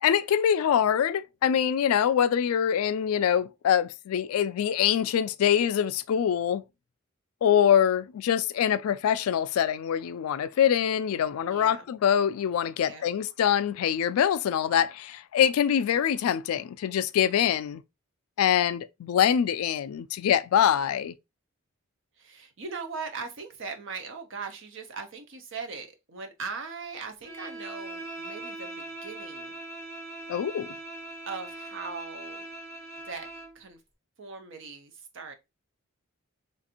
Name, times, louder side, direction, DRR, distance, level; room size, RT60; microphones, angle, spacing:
voice 1, 0.0-6.6 7.4-17.8 18.4-21.1 30.3-30.8, left 9 dB, 85° left, 0.3 m, -24 dB
voice 2, 11.5-11.9 12.8-13.1 20.8-21.0 22.2-29.5 31.3-32.5 33.0-33.3 33.5-33.8 34.2-35.3, right 4 dB, 60° right, 0.7 m, -40 dB
Bowed string instrument, 27.2-33.6, right 2 dB, 90° right, 2.1 m, -41 dB
3.3 x 2.5 x 2.8 m
head